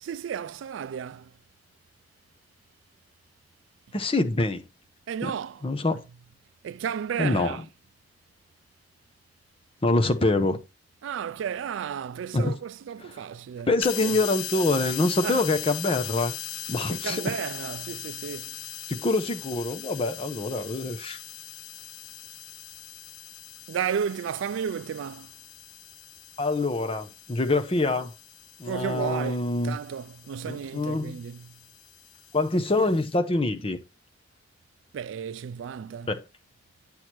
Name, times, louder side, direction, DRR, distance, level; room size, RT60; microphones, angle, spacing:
voice 1, 0.0-1.4 5.1-5.6 5.9-6.0 6.6-7.6 11.0-13.7 14.0-14.2 15.2-15.4 16.9-18.6 23.7-25.3 28.7-31.6 34.9-36.1, right 8 dB, 75° right, 0.3 m, -33 dB
voice 2, 3.9-4.6 5.2-5.3 5.6-6.0 7.2-7.6 9.8-10.6 12.3-12.5 13.7-16.3 16.7-17.2 18.9-21.2 26.4-28.1 28.6-29.8 30.5-31.2 32.3-33.8 36.1-36.2, left 2 dB, 30° left, 0.8 m, -25 dB
sound 1, 13.8-33.2, left 13 dB, 70° left, 0.5 m, -40 dB
8.7 x 6.3 x 3.0 m
head